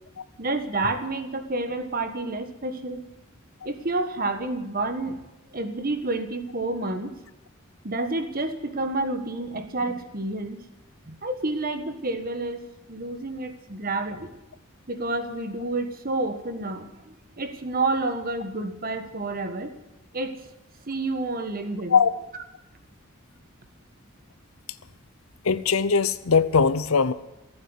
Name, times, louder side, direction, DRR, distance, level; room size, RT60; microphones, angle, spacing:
voice 1, 0.4-3.1 3.6-5.2 5.5-7.1 7.8-10.6 11.1-14.3 14.9-19.7 20.1-20.4 20.9-22.0, right 2 dB, 45° right, 8 dB, 1.4 m, -29 dB
voice 2, 25.4-27.1, left 5 dB, 85° left, 15 dB, 0.7 m, -20 dB
15.0 x 8.8 x 9.7 m, 0.96 s
head